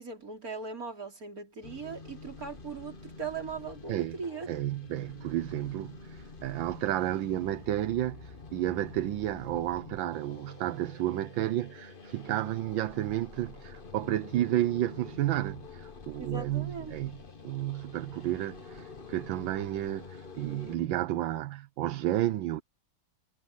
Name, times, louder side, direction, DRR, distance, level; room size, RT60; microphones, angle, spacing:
voice 1, 0.0-4.6 16.2-17.0, right 5 dB, 45° right, 4.2 m, -39 dB
sound 1, 1.6-20.8, left 4 dB, 30° left, 1.5 m, -48 dB
voice 2, 4.5-17.2 17.4-22.6, right 13 dB, 80° right, 1.5 m, -31 dB
omnidirectional pair, 2.1 m